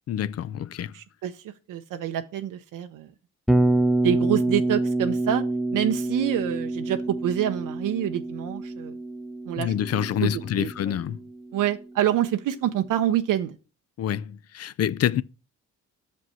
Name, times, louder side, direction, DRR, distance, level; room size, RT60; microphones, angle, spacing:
voice 1, 0.1-0.9 9.6-11.2 14.0-15.2, left 10 dB, 50° left, 0.4 m, -27 dB
voice 2, 0.9-1.4 1.7-3.1 4.0-5.4 5.7-9.0 9.4-11.0 11.5-13.6, right 11 dB, 75° right, 0.6 m, -27 dB
Bass guitar, 3.5-11.6, right 2 dB, ahead, 0.6 m, -27 dB
6.1 x 5.3 x 5.5 m
cardioid pair, 70°, 32 cm